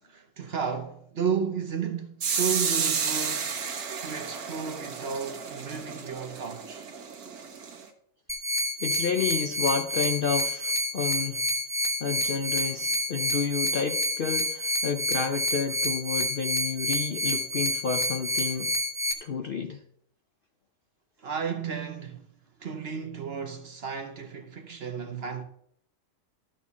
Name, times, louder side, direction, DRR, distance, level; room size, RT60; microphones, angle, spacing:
voice 1, 0.0-3.7 4.0-6.9 19.1-19.2 21.2-22.2 22.6-25.4, right 6 dB, 50° right, 1.0 m, -33 dB
sound 1, 2.2-7.9, right 6 dB, 85° right, 1.6 m, -31 dB
sound 2, 8.3-19.1, equal, 5° right, 0.6 m, -28 dB
voice 2, 8.8-11.4 12.0-18.7 19.2-19.8, left 5 dB, 55° left, 0.6 m, -30 dB
12.5 x 4.4 x 7.0 m
omnidirectional pair, 1.6 m